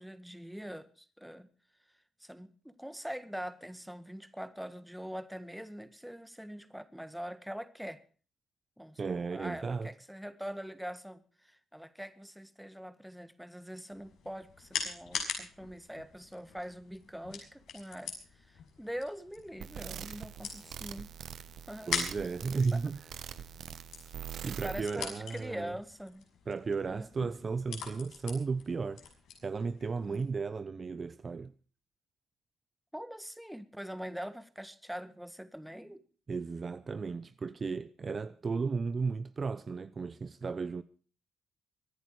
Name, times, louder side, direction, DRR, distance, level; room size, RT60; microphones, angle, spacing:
voice 1, 0.0-1.5 2.2-8.0 8.8-21.1 21.7-21.9 22.7-22.8 24.6-26.3 26.9-27.1 30.0-30.3 32.9-36.0, equal, ahead, 1.7 m, -43 dB
voice 2, 9.0-9.9 21.9-23.0 24.4-25.8 26.5-29.0 29.4-31.5 36.3-40.8, right 4 dB, 35° right, 0.9 m, -34 dB
sound 1, 13.9-30.3, left 6 dB, 75° left, 6.1 m, -43 dB
sound 2, 19.6-24.8, right 9 dB, 65° right, 1.4 m, -44 dB
23.5 x 10.5 x 4.8 m
cardioid pair, 90°, 0 cm